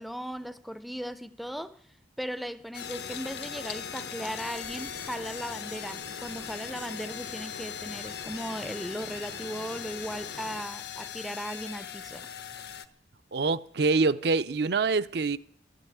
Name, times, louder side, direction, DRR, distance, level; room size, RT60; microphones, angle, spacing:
voice 1, 0.0-1.8 2.2-12.3, equal, ahead, 0.5 m, -37 dB
sound 1, 2.7-12.9, left 9 dB, 65° left, 0.9 m, -40 dB
sound 2, 2.8-10.6, left 4 dB, 85° left, 1.4 m, -44 dB
voice 2, 13.3-15.4, right 4 dB, 65° right, 0.6 m, -25 dB
12.5 x 9.1 x 9.6 m
head